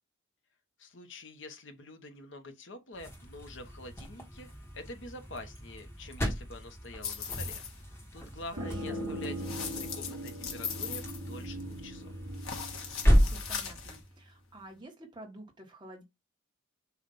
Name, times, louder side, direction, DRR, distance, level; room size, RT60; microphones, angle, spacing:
voice 1, 0.8-4.5 4.7-7.6 8.1-12.1, left 2 dB, 60° left, 1.0 m, -46 dB
sound 1, 2.9-14.1, equal, 10° left, 1.1 m, -33 dB
sound 2, 7.0-7.8 9.4-11.8 12.3-14.0, left 6 dB, 85° left, 1.4 m, -39 dB
voice 2, 8.6-9.1 13.3-16.0, right 1 dB, 20° right, 1.4 m, -49 dB
sound 3, 8.6-14.0, equal, 80° right, 2.3 m, -40 dB
7.1 x 2.5 x 5.3 m
head